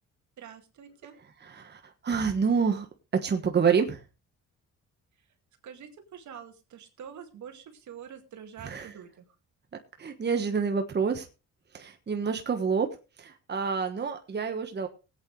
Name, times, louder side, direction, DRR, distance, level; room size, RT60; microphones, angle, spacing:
voice 1, 0.4-1.2 5.6-9.2, right 8 dB, 70° right, 6 dB, 2.2 m, -46 dB
voice 2, 1.4-2.9 3.1-4.0 8.6-8.9 10.0-11.3 11.7-12.9 13.2-14.9, right 6 dB, 35° right, 6 dB, 1.4 m, -27 dB
19.0 x 8.7 x 3.3 m, 0.30 s
cardioid pair, 90°, 30 cm